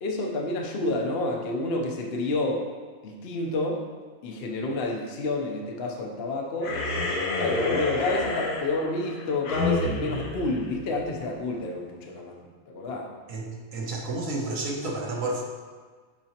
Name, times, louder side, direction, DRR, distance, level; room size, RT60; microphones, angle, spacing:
voice 1, 0.0-2.7 3.0-3.9 4.2-6.8 7.3-12.3 12.7-13.1, left 2 dB, 50° left, 0 dB, 0.9 m, -29 dB
sound 1, 6.6-11.3, left 3 dB, 85° left, 1.4 m, -29 dB
voice 2, 13.7-15.4, right 2 dB, 65° right, -1 dB, 1.3 m, -30 dB
10.5 x 4.1 x 2.9 m, 1.5 s
omnidirectional pair, 1.6 m